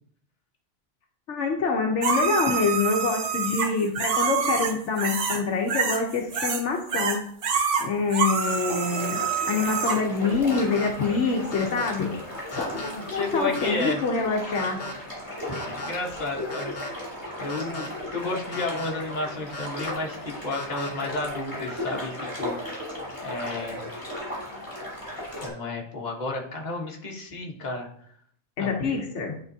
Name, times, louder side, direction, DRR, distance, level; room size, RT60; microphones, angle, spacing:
voice 1, 1.3-7.2 7.8-9.2 9.5-12.1 12.5-12.7 13.1-14.8 28.6-29.3, left 4 dB, 75° left, 2 dB, 1.1 m, -26 dB
sound 1, 2.0-5.4 5.7-6.6 6.9-10.0 13.6-13.7, right 6 dB, 85° right, 1.2 m, -26 dB
sound 2, 8.4-25.5, left 1 dB, 15° left, 2.8 m, -36 dB
sound 3, 10.5-10.9 11.5-11.9 12.5-12.9 13.5-13.9 14.5-14.9 15.5-15.9 16.5-16.9 17.5-17.9 18.5-18.9 19.5-19.9 20.5-20.9, left 3 dB, 55° left, 1.3 m, -37 dB
voice 2, 12.7-14.0 15.4-16.9 17.4-22.1 22.4-22.5 23.2-23.8 25.4-27.9 28.6-29.0, left 2 dB, 40° left, -1 dB, 1.3 m, -32 dB
10.5 x 4.3 x 2.7 m, 0.64 s
omnidirectional pair, 1.2 m